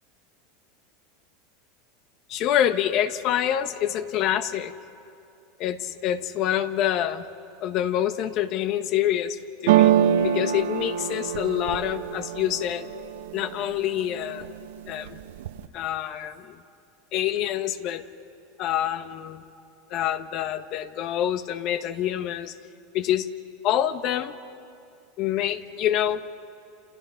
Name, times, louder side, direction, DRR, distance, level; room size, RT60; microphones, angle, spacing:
voice 1, 2.3-4.7 5.6-7.2 7.6-9.9 10.2-12.9 13.3-14.5 14.9-15.2 15.7-16.6 17.1-18.0 18.6-19.4 19.9-22.5 22.9-23.3 23.6-24.4 25.2-26.2, left 11 dB, 50° left, 11 dB, 1.2 m, -26 dB
sound 1, 9.7-13.5 14.0-14.6 14.9-15.7, right 10 dB, 85° right, 1.1 m, -24 dB
29.5 x 28.5 x 5.8 m, 2.6 s
supercardioid pair, 125°, 0 cm